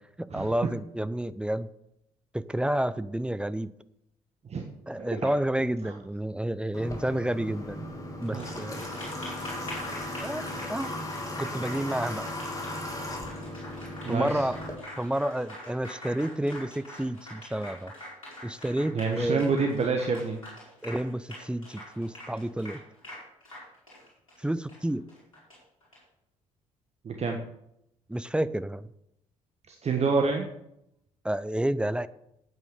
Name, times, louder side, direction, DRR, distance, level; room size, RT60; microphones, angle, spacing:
voice 1, 0.2-1.7 2.3-3.7 4.9-7.8 8.2-8.8 10.2-10.4 10.7-10.9 11.4-12.3 14.1-14.6 15.0-17.9 18.4-19.5 20.8-22.8 24.4-25.0 28.1-28.9 31.2-32.1, right 1 dB, 5° right, 15 dB, 0.6 m, -30 dB
Water / Water tap faucet, 6.7-14.7, left 1 dB, 20° left, 3.0 m, -37 dB
Applause, 8.2-26.0, left 1 dB, 85° left, 5.2 m, -44 dB
voice 2, 14.0-14.4 18.9-20.4 27.0-27.4 29.7-30.5, right 4 dB, 40° right, 3 dB, 1.4 m, -27 dB
9.3 x 9.1 x 6.8 m, 0.79 s
figure-of-eight pair, 45°, 17 cm